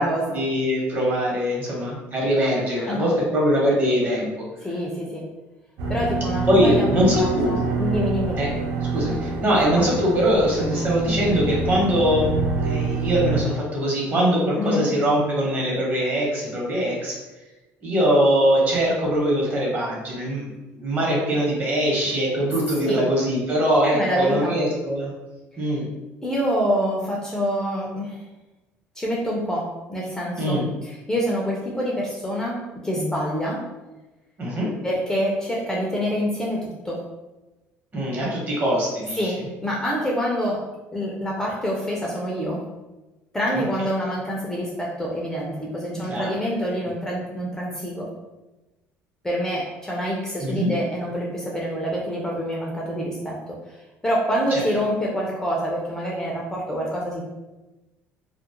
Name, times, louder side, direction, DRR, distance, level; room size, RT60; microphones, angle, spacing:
voice 1, 0.3-4.3 6.5-7.6 8.4-8.5 8.9-12.4 12.6-17.2 17.8-20.5 20.7-25.1 25.6-25.9 30.4-30.7 34.4-34.7 37.9-39.3 43.5-43.6 45.9-46.3 50.4-50.7 54.5-54.6, equal, 40° right, -4 dB, 1.1 m, -22 dB
voice 2, 2.8-3.1 4.6-5.3 5.9-8.4 9.5-9.9 14.6-14.9 22.8-23.0 23.8-24.6 26.2-28.2 29.0-33.7 34.8-37.0 39.2-42.7 43.3-48.1 49.2-53.8 54.0-57.2, equal, 10° left, -3 dB, 0.5 m, -26 dB
sound 1, 5.8-13.4, right 3 dB, 70° right, 0.4 m, -26 dB
2.4 x 2.0 x 2.9 m, 1.1 s
cardioid pair, 110°, 5 cm